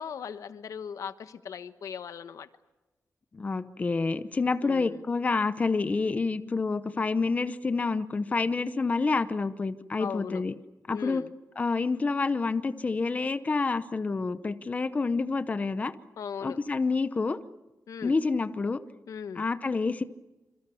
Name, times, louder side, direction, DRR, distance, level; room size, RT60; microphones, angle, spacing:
voice 1, 0.0-2.5 4.6-5.0 10.0-10.4 10.9-11.3 16.2-16.6 17.9-18.1 19.1-19.4, left 7 dB, 85° left, 11 dB, 1.2 m, -38 dB
voice 2, 3.3-10.5 10.9-11.2 11.6-15.9 16.4-17.4 18.0-18.8 19.4-20.0, left 4 dB, 25° left, 12 dB, 0.8 m, -28 dB
27.0 x 26.5 x 7.0 m, 1.1 s
wide cardioid pair, 175°, 6 cm